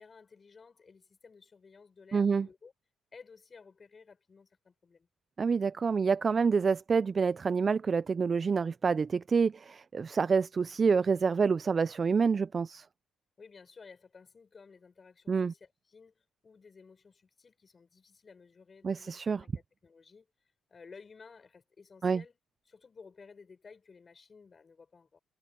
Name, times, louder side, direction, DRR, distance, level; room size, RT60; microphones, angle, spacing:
voice 1, 0.0-2.7 3.1-5.1 13.4-20.3 20.7-22.4 22.7-25.2, left 5 dB, 35° left, 5.9 m, -55 dB
voice 2, 2.1-2.5 5.4-12.8 15.3-15.5 18.8-19.4 22.0-22.2, right 5 dB, 40° right, 0.4 m, -27 dB
cardioid pair, 90°, 0 cm